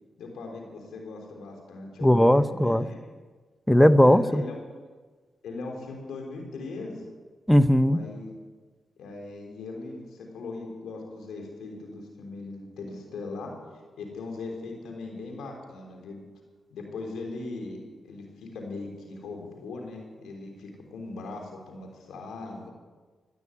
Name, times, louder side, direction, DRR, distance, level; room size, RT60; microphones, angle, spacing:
voice 1, 0.2-3.0 4.0-4.6 5.4-7.0 7.8-8.3 9.0-13.5 14.0-16.2 16.7-22.7, left 3 dB, 85° left, 2 dB, 3.5 m, -39 dB
voice 2, 2.0-2.8 3.7-4.4 7.5-8.0, equal, 5° left, 13 dB, 0.7 m, -18 dB
15.0 x 9.6 x 9.7 m, 1.4 s
supercardioid pair, 50°, 0 cm